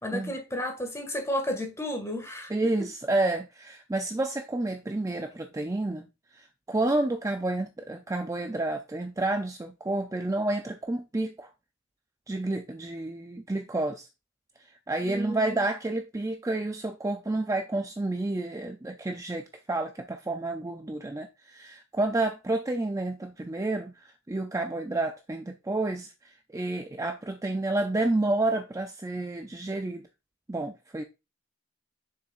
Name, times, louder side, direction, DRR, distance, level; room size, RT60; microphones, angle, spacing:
voice 1, 0.0-2.5 15.0-15.6, left 1 dB, 15° left, 1.9 m, -32 dB
voice 2, 2.5-6.1 6.3-11.5 12.3-14.1 14.9-30.0 30.5-31.0, right 2 dB, 15° right, 0.5 m, -30 dB
7.1 x 6.5 x 2.5 m
head